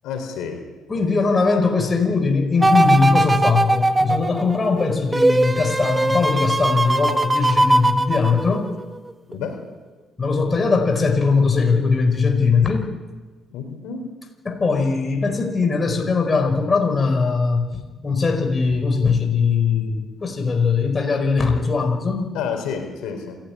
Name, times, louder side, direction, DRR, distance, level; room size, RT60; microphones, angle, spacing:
voice 1, 0.0-0.7 0.9-1.0 9.3-9.6 13.5-14.1 22.3-23.4, left 6 dB, 85° left, 4 dB, 4.2 m, -29 dB
voice 2, 0.9-8.7 10.2-12.9 14.4-22.3, left 4 dB, 30° left, 4 dB, 4.8 m, -20 dB
sound 1, 2.6-8.8 9.3-9.4, right 2 dB, 15° right, 1.4 m, -20 dB
27.0 x 13.5 x 9.8 m, 1.3 s
cardioid pair, 85°, 0 cm